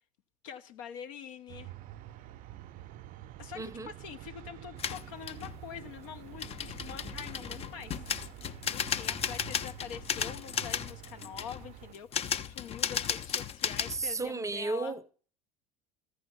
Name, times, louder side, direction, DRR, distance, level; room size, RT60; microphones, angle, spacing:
voice 1, 0.4-1.7 2.2-2.3 3.4-8.1 8.4-15.0, left 8 dB, 65° left, 0.9 m, -45 dB
sound 1, 1.5-11.9, right 13 dB, 50° right, 0.6 m, -48 dB
voice 2, 3.6-3.9 13.9-15.1, right 3 dB, 15° right, 0.7 m, -34 dB
sound 2, 4.8-5.6 6.4-14.1, left 8 dB, 35° left, 0.6 m, -35 dB
14.0 x 5.1 x 8.0 m
hypercardioid pair, 70°, 18 cm